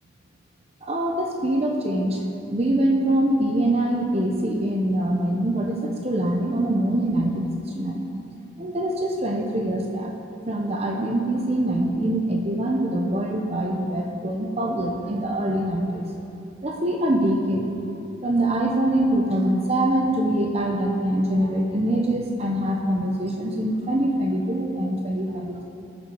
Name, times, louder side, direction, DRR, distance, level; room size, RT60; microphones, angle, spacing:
voice 1, 0.8-2.2 2.5-8.0 8.6-10.1 10.5-16.1 16.6-17.7 18.2-25.6, right 1 dB, 35° right, 1 dB, 1.1 m, -24 dB
19.0 x 7.3 x 6.4 m, 2.9 s
head